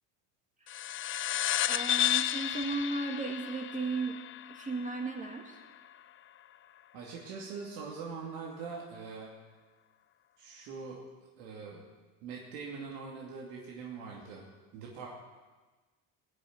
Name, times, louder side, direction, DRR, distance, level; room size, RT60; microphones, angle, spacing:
sound 1, 0.7-5.6, left 12 dB, 35° left, 0.4 m, -32 dB
voice 1, 1.7-4.2 4.5-5.6, right 3 dB, 20° right, 2 dB, 1.8 m, -35 dB
voice 2, 6.9-9.3 10.4-11.0 11.4-11.9 12.2-14.5 14.7-15.1, right 5 dB, 80° right, -2 dB, 2.7 m, -42 dB
17.0 x 6.7 x 9.4 m, 1.3 s
supercardioid pair, 105°, 38 cm